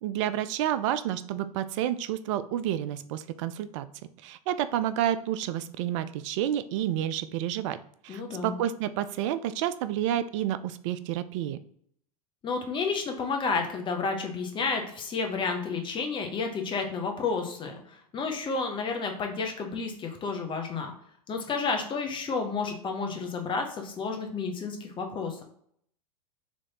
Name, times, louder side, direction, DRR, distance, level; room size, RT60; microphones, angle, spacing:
voice 1, 0.0-3.9 4.2-7.8 8.0-11.6, right 11 dB, 50° right, 13 dB, 0.4 m, -30 dB
voice 2, 8.1-8.5 12.4-20.9 21.3-25.4, left 4 dB, 25° left, 4 dB, 0.9 m, -31 dB
4.1 x 3.1 x 2.9 m, 0.66 s
hypercardioid pair, 95°, 20 cm